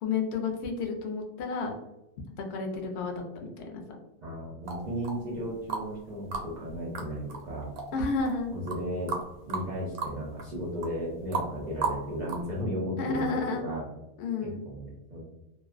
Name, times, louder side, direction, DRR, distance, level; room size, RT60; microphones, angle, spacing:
voice 1, 0.0-1.7 2.4-3.8 7.9-8.5 13.0-13.7 14.2-14.6, left 4 dB, 65° left, 2 dB, 0.7 m, -31 dB
voice 2, 4.2-7.7 8.5-9.2 9.5-13.9 14.4-15.2, equal, 65° right, -6 dB, 0.4 m, -35 dB
sound 1, 4.7-6.0 6.3-12.6, right 4 dB, 90° right, 1.1 m, -35 dB
2.5 x 2.0 x 2.4 m, 0.95 s
omnidirectional pair, 1.5 m